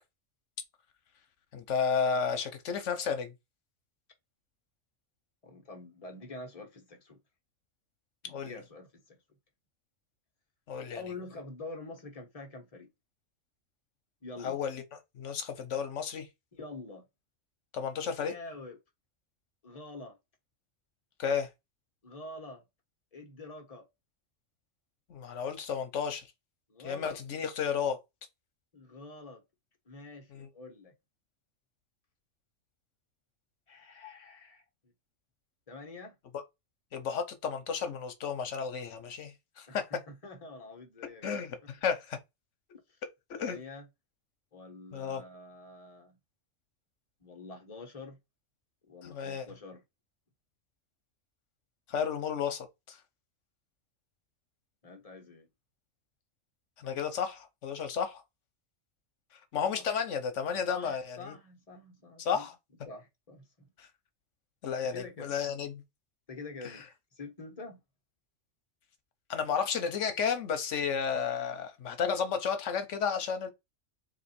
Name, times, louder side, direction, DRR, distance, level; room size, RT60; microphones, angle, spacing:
voice 1, 1.5-3.3 8.2-8.6 10.7-11.0 14.4-14.8 15.1-16.3 17.7-18.4 21.2-21.5 25.1-26.3 26.8-28.0 30.3-30.5 36.9-39.9 41.2-42.2 43.3-43.6 44.9-45.2 49.0-49.5 51.9-53.0 56.8-58.2 59.5-61.3 62.2-62.5 63.8-63.9 64.6-65.8 66.6-66.8 69.3-73.5, left 6 dB, 75° left, 1.2 m, -32 dB
voice 2, 5.4-7.2 8.2-9.2 10.9-12.9 14.2-14.6 16.5-17.1 18.2-18.8 19.6-20.2 22.0-22.6 23.1-23.9 26.7-27.2 28.7-29.4 29.9-30.9 33.7-34.6 35.7-36.2 39.7-41.3 42.9-43.0 43.4-43.9 44.5-46.2 47.2-48.2 48.9-49.8 54.8-55.5 59.7-59.9 60.7-62.5 62.9-63.7 64.9-65.4 66.3-66.8 67.1-67.8, left 3 dB, 30° left, 1.2 m, -46 dB
4.2 x 2.6 x 4.2 m
omnidirectional pair, 1.3 m